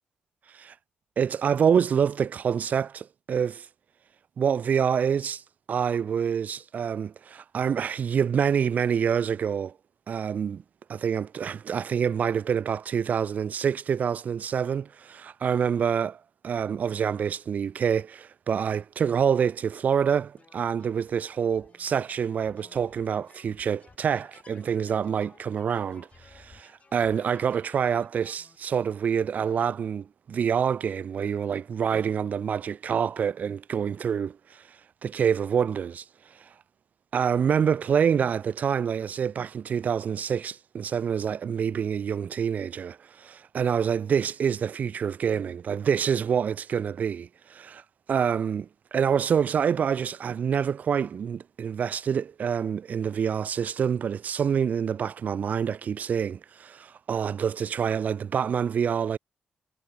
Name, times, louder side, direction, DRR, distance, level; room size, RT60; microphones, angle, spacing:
voice 1, 1.2-3.7 4.4-5.4 5.7-9.7 10.1-10.6 10.9-16.2 16.4-34.6 35.0-36.0 37.1-47.8 48.1-59.2, right 7 dB, 60° right, 0.6 m, -27 dB
sound 1, 20.4-28.6, left 4 dB, 45° left, 4.3 m, -56 dB
supercardioid pair, 45°, 3 cm